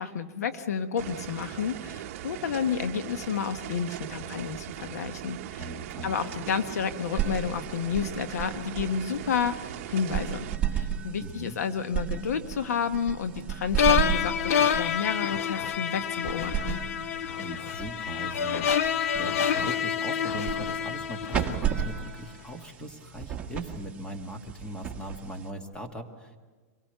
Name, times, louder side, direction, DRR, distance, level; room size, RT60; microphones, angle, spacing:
voice 1, 0.0-5.7 6.0-16.8, left 7 dB, 85° left, 9 dB, 1.2 m, -31 dB
sound 1, 1.0-10.6, right 12 dB, 55° right, 0.9 m, -39 dB
voice 2, 5.6-6.1 11.2-11.6 17.4-26.4, right 1 dB, 10° left, 4 dB, 1.9 m, -40 dB
sound 2, 6.9-25.7, right 9 dB, 15° right, 2.0 m, -35 dB
sound 3, 13.8-22.0, left 8 dB, 65° left, 0.8 m, -27 dB
25.5 x 18.0 x 6.8 m, 1.4 s
hypercardioid pair, 140°, 8 cm